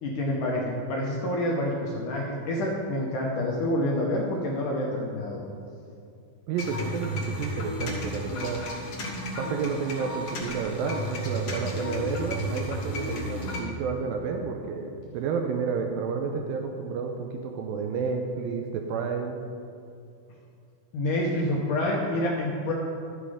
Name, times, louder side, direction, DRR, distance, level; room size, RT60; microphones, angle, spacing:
voice 1, 0.0-5.4 20.9-22.7, left 1 dB, 70° left, -2 dB, 2.0 m, -27 dB
voice 2, 6.5-8.7 9.4-19.4, right 5 dB, 85° right, 3 dB, 2.1 m, -31 dB
sound 1, 6.6-13.6, equal, 55° left, 1.8 m, -33 dB
11.5 x 7.8 x 4.9 m, 2.5 s
omnidirectional pair, 4.6 m